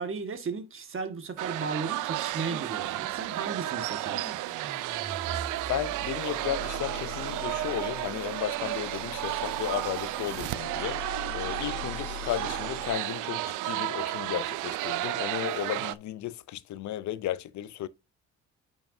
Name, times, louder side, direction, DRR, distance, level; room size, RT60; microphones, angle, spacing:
voice 1, 0.0-4.4, right 4 dB, 45° right, 1.8 m, -35 dB
sound 1, 1.4-16.0, right 16 dB, 85° right, 0.5 m, -33 dB
sound 2, 4.1-13.3, left 1 dB, 65° right, 3.1 m, -41 dB
voice 2, 5.7-17.9, left 13 dB, 70° left, 0.7 m, -34 dB
9.0 x 5.7 x 2.7 m
cardioid pair, 90°, 30 cm